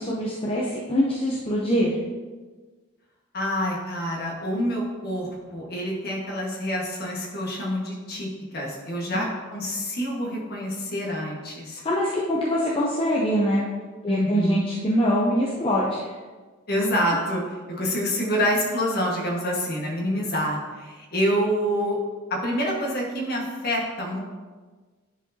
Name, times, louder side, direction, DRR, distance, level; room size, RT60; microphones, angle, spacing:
voice 1, 0.0-1.9 9.1-9.2 11.8-13.6 14.0-16.1, equal, 25° left, -5 dB, 0.6 m, -23 dB
voice 2, 3.3-8.3 8.5-11.8 14.1-14.6 16.7-17.4 17.7-22.0 22.3-24.2, equal, 45° left, -2 dB, 1.5 m, -27 dB
10.0 x 4.7 x 2.8 m, 1.4 s
head